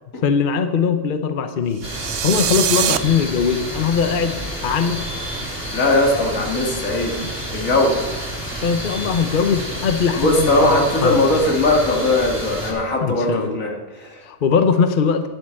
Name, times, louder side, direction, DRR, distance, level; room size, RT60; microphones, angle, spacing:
voice 1, 0.2-1.8 2.2-5.0 8.6-11.2 13.0-13.6 14.2-15.3, left 6 dB, 45° left, 8 dB, 0.9 m, -20 dB
sound 1, 1.8-12.7, equal, 10° right, 3.7 m, -29 dB
sound 2, 1.8-3.0, right 11 dB, 70° right, 0.9 m, -22 dB
voice 2, 5.7-7.2 7.5-8.1 10.2-14.2, left 2 dB, 85° left, 0 dB, 2.4 m, -19 dB
11.0 x 7.9 x 7.5 m, 1.2 s
omnidirectional pair, 1.4 m